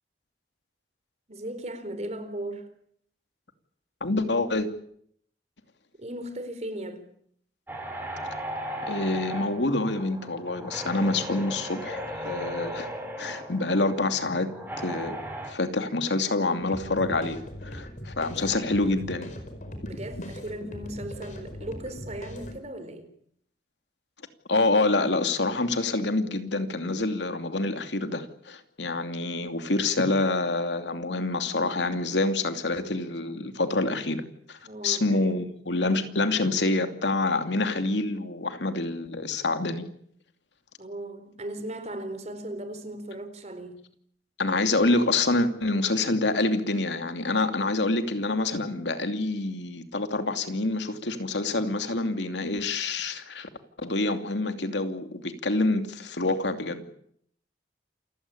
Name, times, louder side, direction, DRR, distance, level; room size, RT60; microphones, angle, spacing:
voice 1, 1.3-2.7 6.0-7.1 19.8-23.1 34.6-35.3 40.8-43.8, right 1 dB, 40° right, 4.2 m, -37 dB
voice 2, 4.0-4.7 8.8-12.9 13.2-14.5 14.8-15.2 15.5-19.3 24.5-39.9 44.4-53.5 53.8-56.9, left 2 dB, 85° left, 2.8 m, -27 dB
sound 1, 7.7-15.5, equal, 10° right, 6.1 m, -36 dB
sound 2, 16.6-22.6, equal, 45° left, 5.0 m, -40 dB
28.5 x 16.5 x 9.9 m
head